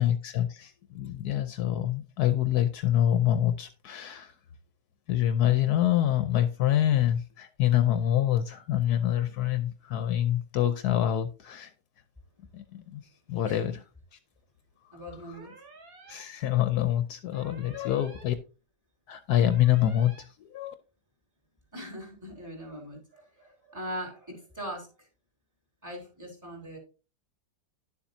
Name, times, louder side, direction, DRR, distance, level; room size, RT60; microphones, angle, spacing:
voice 1, 0.0-4.3 5.1-11.7 12.5-13.0 13.3-13.8 16.1-18.3 19.1-20.7, left 11 dB, 75° left, 1.1 m, -26 dB
voice 2, 13.4-13.8 14.9-15.6 21.7-25.1 25.8-26.8, equal, 10° right, 3.5 m, -41 dB
sound 1, 15.3-16.2 17.3-18.2 19.3-20.2, right 3 dB, 55° right, 2.1 m, -51 dB
10.5 x 7.2 x 2.7 m
omnidirectional pair, 1.8 m